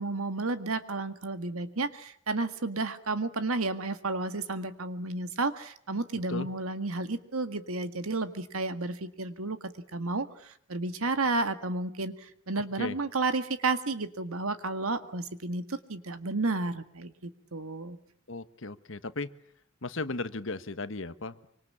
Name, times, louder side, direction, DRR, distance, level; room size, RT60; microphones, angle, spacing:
voice 1, 0.0-18.0, right 3 dB, 85° right, 10 dB, 1.8 m, -32 dB
voice 2, 18.3-19.3 19.8-21.5, left 3 dB, 65° left, 13 dB, 1.2 m, -36 dB
25.0 x 25.0 x 8.6 m, 0.64 s
head